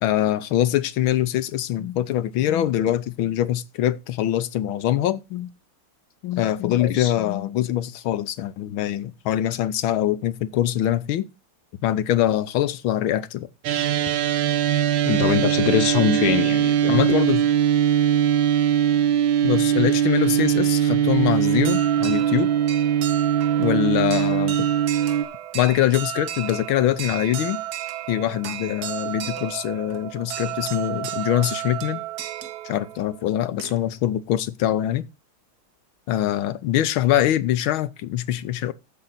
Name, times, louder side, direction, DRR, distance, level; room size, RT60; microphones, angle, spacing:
voice 1, 0.0-5.5 6.2-11.3 11.8-13.5 16.9-17.5 19.4-22.5 23.6-24.7 25.5-27.6 28.1-32.0 32.6-35.0 36.1-38.7, left 12 dB, 80° left, 1.5 m, -23 dB
voice 2, 6.8-7.1 15.1-17.0, left 7 dB, 60° left, 1.3 m, -22 dB
sound 1, 13.6-25.2, right 10 dB, 75° right, 1.7 m, -21 dB
sound 2, 21.4-34.1, right 12 dB, 55° right, 1.2 m, -33 dB
14.5 x 5.6 x 4.0 m
omnidirectional pair, 2.3 m